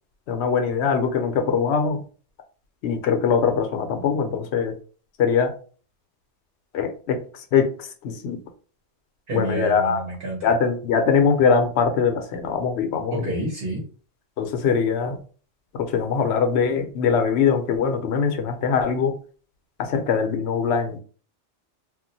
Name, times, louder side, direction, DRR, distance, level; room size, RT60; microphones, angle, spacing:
voice 1, 0.3-2.0 2.8-4.7 5.2-5.5 6.7-8.4 9.3-10.0 10.4-13.1 14.4-15.2 15.7-19.2 19.8-21.0, left 6 dB, 75° left, 6 dB, 0.8 m, -22 dB
voice 2, 9.3-10.5 13.1-13.8, right 2 dB, 55° right, -1 dB, 1.0 m, -28 dB
2.3 x 2.1 x 3.9 m, 0.40 s
omnidirectional pair, 1.2 m